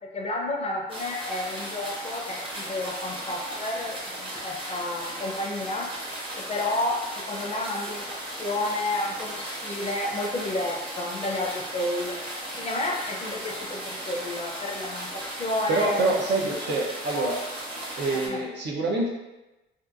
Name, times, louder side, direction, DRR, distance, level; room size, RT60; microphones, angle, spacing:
voice 1, 0.0-5.9 6.5-12.2 12.6-16.1 16.4-16.5 17.1-17.3 18.0-18.4, left 2 dB, 30° left, -1 dB, 0.5 m, -31 dB
sound 1, 0.9-18.3, right 1 dB, 25° right, 0.8 m, -36 dB
voice 2, 15.7-17.4 18.0-19.1, right 2 dB, 60° right, -1 dB, 0.6 m, -26 dB
2.7 x 2.4 x 2.5 m, 1.0 s
cardioid pair, 90°, 20 cm